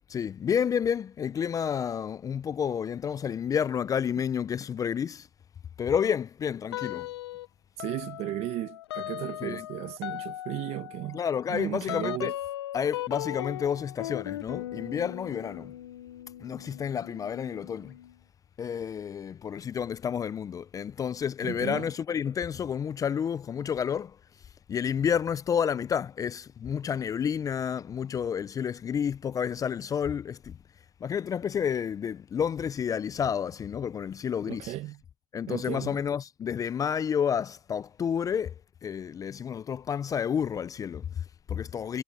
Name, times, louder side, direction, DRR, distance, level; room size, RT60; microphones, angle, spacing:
voice 1, 0.0-5.3 5.8-7.1 9.4-9.7 11.1-12.3 12.7-15.8 16.4-18.0 18.6-30.6 31.0-34.7 35.3-38.5 38.8-42.0, left 8 dB, 25° left, 0.5 m, -30 dB
sound 1, 6.7-7.5 7.8-18.1, left 14 dB, 90° left, 0.6 m, -38 dB
voice 2, 7.8-11.2 11.5-12.3 21.4-21.9 34.5-35.0 35.5-36.0, right 16 dB, 55° right, 1.3 m, -35 dB
supercardioid pair, 100°, 13 cm